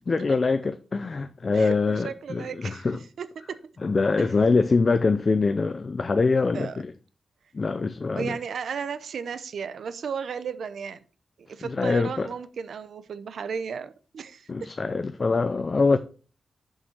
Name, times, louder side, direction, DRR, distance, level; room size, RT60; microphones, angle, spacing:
voice 1, 0.1-3.0 3.8-6.9 7.5-8.4 11.6-12.3 14.5-16.0, left 4 dB, 35° left, 0.5 m, -24 dB
voice 2, 1.5-2.9 3.2-3.6 4.2-4.3 6.5-6.8 8.2-11.0 11.5-14.5, right 6 dB, 75° right, 0.7 m, -34 dB
6.7 x 5.5 x 6.3 m
wide cardioid pair, 160°, 0 cm